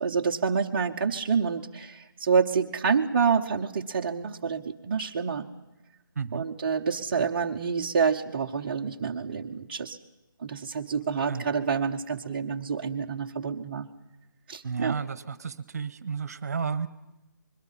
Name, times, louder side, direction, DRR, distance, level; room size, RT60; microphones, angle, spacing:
voice 1, 0.0-5.5 6.3-10.0 10.4-13.9 14.5-15.0, right 5 dB, 25° right, -1 dB, 0.8 m, -27 dB
voice 2, 6.1-6.4 11.3-11.5 14.6-16.9, right 6 dB, 45° right, 16 dB, 1.1 m, -32 dB
26.0 x 22.0 x 5.7 m, 0.98 s
hypercardioid pair, 170°, 12 cm